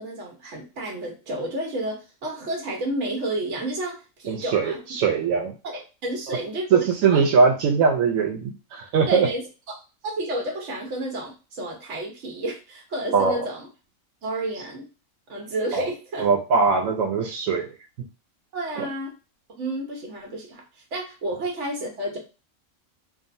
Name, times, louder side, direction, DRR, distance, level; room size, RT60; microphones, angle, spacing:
voice 1, 0.0-4.8 5.6-7.2 9.1-9.4 9.7-13.7 14.2-14.9 15.3-16.2 18.5-19.1 19.6-20.6 20.9-22.2, right 1 dB, 60° right, 1 dB, 1.3 m, -31 dB
voice 2, 4.3-5.5 6.3-6.4 6.7-9.3 13.1-13.5 15.7-15.9 16.2-17.7 18.8-18.9, right 5 dB, 85° right, 1 dB, 1.0 m, -21 dB
3.6 x 2.0 x 2.6 m, 0.30 s
omnidirectional pair, 1.4 m